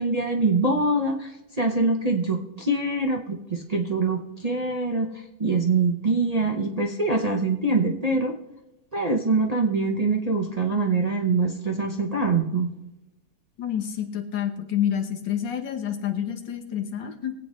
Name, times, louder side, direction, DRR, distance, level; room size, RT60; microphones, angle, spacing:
voice 1, 0.0-8.3 8.9-12.7, right 3 dB, 30° right, 1 dB, 0.7 m, -24 dB
voice 2, 13.6-17.3, left 9 dB, 85° left, 5 dB, 1.9 m, -28 dB
22.0 x 8.4 x 3.2 m, 0.99 s
omnidirectional pair, 1.9 m